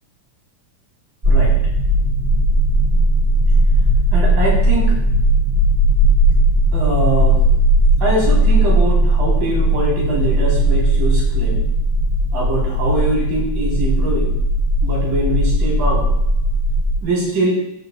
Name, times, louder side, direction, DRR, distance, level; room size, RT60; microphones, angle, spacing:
sound 1, 1.2-17.0, right 1 dB, 25° right, 1.2 m, -16 dB
voice 1, 4.1-4.9 6.7-7.4 8.0-11.6 12.3-14.3 14.8-16.0 17.0-17.6, right 1 dB, 75° right, -5 dB, 5.9 m, -22 dB
14.5 x 8.2 x 2.4 m, 0.84 s
omnidirectional pair, 4.0 m